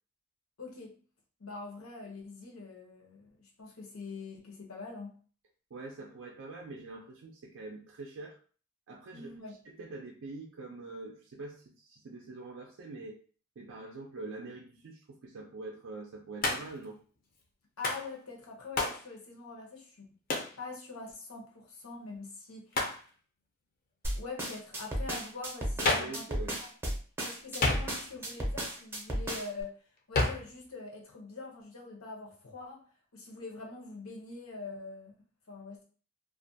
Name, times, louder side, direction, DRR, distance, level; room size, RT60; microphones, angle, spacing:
voice 1, 0.6-1.0 1.4-5.1 9.1-9.5 17.8-20.0 20.6-22.7 24.1-26.3 26.6-26.7 27.2-29.8 30.1-32.8 33.1-35.1 35.5-35.8, left 3 dB, 85° left, 0 dB, 0.8 m, -44 dB
voice 2, 5.7-8.4 8.9-9.3 9.7-13.2 13.6-17.0 25.8-26.6, right 3 dB, 60° right, 0 dB, 0.4 m, -44 dB
Hands, 16.4-16.8 17.8-18.1 18.8-19.0 20.3-20.6 22.7-23.0 25.8-26.2 27.6-28.2 30.1-30.5, left 2 dB, 45° left, 0.5 m, -30 dB
sound 1, 24.0-29.6, right 1 dB, 10° right, 0.6 m, -34 dB
2.4 x 2.1 x 2.6 m, 0.41 s
head